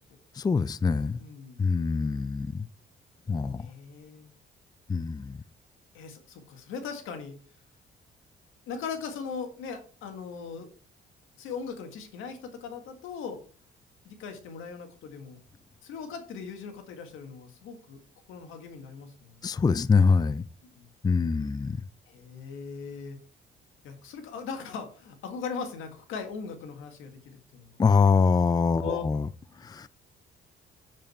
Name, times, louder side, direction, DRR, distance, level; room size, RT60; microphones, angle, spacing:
voice 1, 0.3-1.2 1.6-2.7 3.3-3.7 4.9-5.4 19.4-20.5 21.0-21.9 27.8-29.3 29.6-29.9, left 5 dB, 20° left, 0.4 m, -24 dB
voice 2, 1.2-1.7 3.6-4.3 5.9-7.4 8.7-10.7 11.4-13.4 14.1-15.4 15.8-18.0 18.3-19.5 20.8-20.9 22.1-23.2 23.8-27.2 27.5-27.8 28.8-29.0, left 5 dB, 90° left, 1.9 m, -39 dB
7.4 x 7.4 x 4.4 m
cardioid pair, 90°, 20 cm